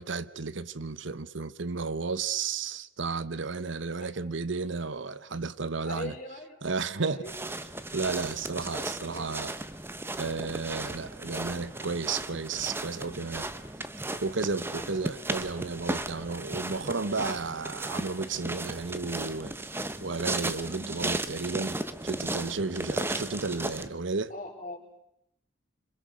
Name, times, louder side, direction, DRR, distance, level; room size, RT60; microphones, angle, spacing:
voice 1, 0.0-6.2 6.6-7.3 7.9-9.5 10.2-13.5 14.2-19.5 20.0-24.3, right 4 dB, 65° right, 0.9 m, -33 dB
voice 2, 5.9-6.5 7.1-7.4 9.1-9.4 14.7-15.0 24.3-25.0, left 1 dB, 40° left, 4.9 m, -41 dB
sound 1, 7.2-23.9, right 2 dB, 10° right, 0.9 m, -35 dB
26.5 x 26.0 x 6.6 m
head